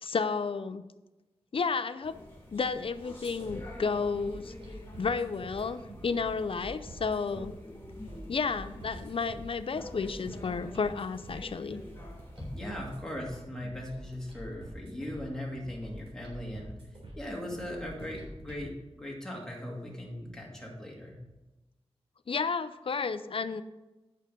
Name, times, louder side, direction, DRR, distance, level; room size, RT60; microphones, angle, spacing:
voice 1, 0.0-0.8 1.5-2.2 2.5-4.5 5.0-7.5 8.3-11.8 22.3-23.6, left 5 dB, 55° left, 12 dB, 0.5 m, -32 dB
sound 1, 2.0-13.0, left 1 dB, 20° left, 2.6 m, -48 dB
sound 2, 3.2-18.7, right 1 dB, 55° right, 3.6 m, -47 dB
voice 2, 12.4-16.8 17.2-21.2, left 1 dB, 5° left, -2 dB, 2.3 m, -39 dB
9.0 x 6.5 x 5.3 m, 1.1 s
wide cardioid pair, 100°, 11 cm